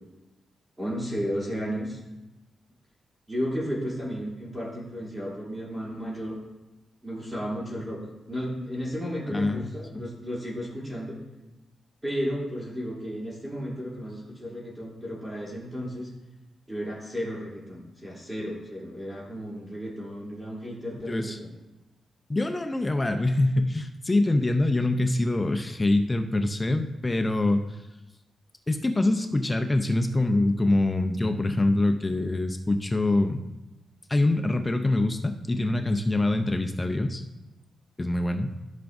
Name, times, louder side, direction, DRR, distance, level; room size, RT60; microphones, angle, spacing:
voice 1, 0.8-2.0 3.3-6.4 7.0-8.0 8.2-11.2 12.0-16.1 16.7-21.5, equal, 15° right, -6 dB, 3.0 m, -33 dB
voice 2, 9.3-9.7 9.9-10.0 21.1-21.4 22.3-27.6 28.7-33.4 34.1-37.2 38.0-38.5, left 2 dB, 15° left, 6 dB, 0.5 m, -24 dB
14.0 x 5.8 x 2.6 m, 1.0 s
cardioid pair, 120°, 0 cm